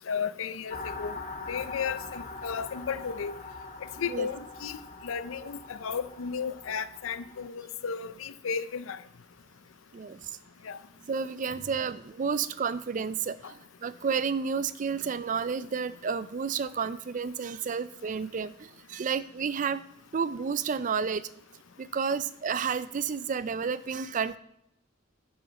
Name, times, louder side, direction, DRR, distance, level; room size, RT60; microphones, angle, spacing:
voice 1, 0.1-1.1 1.5-3.3 4.0-4.8 5.0-9.0 10.6-10.8, left 6 dB, 80° left, 14 dB, 0.5 m, -34 dB
sound 1, 0.7-7.5, left 3 dB, 35° left, 1.0 m, -42 dB
voice 2, 9.9-10.3 11.1-19.8 20.1-21.3 21.8-24.4, right 6 dB, 40° right, 15 dB, 0.4 m, -31 dB
10.5 x 6.5 x 4.1 m, 0.77 s
head